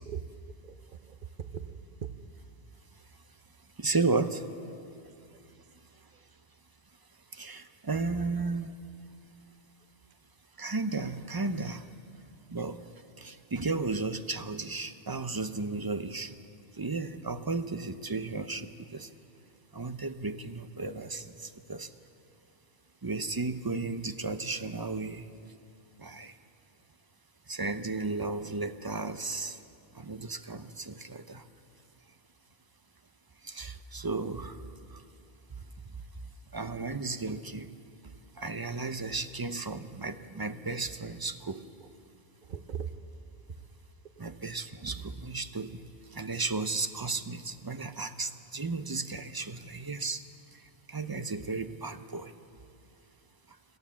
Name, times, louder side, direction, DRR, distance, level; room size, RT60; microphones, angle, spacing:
voice 1, 0.6-2.1 5.2-5.4 6.1-6.2 41.8-41.9 42.4-42.9 44.2-44.3, right 8 dB, 55° right, 10 dB, 0.9 m, -40 dB
voice 2, 3.8-4.4 7.4-8.7 10.6-11.8 12.5-12.8 13.2-16.3 16.8-18.7 18.9-19.1 19.7-21.2 21.7-21.9 23.0-25.2 26.0-26.3 27.5-29.5 30.0-31.4 33.5-34.5 36.5-37.7 38.4-41.6 44.2-45.7 46.1-50.2 50.9-52.3, right 3 dB, 25° right, 10 dB, 0.6 m, -34 dB
27.0 x 14.0 x 7.4 m, 2.5 s
omnidirectional pair, 1.1 m